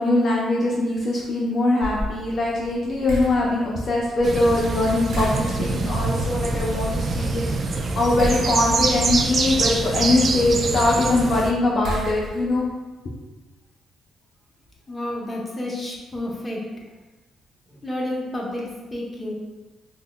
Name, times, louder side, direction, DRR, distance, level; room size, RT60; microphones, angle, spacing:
voice 1, 0.0-12.7, left 2 dB, 50° left, -3 dB, 0.5 m, -22 dB
sound 1, 1.8-12.7, equal, 85° right, 1.0 m, -36 dB
sound 2, 4.2-11.5, right 3 dB, 45° right, 0.3 m, -25 dB
voice 2, 14.9-16.8 17.7-19.3, left 1 dB, 15° left, -3 dB, 0.9 m, -30 dB
5.3 x 2.1 x 2.3 m, 1.2 s
cardioid pair, 90°, 0 cm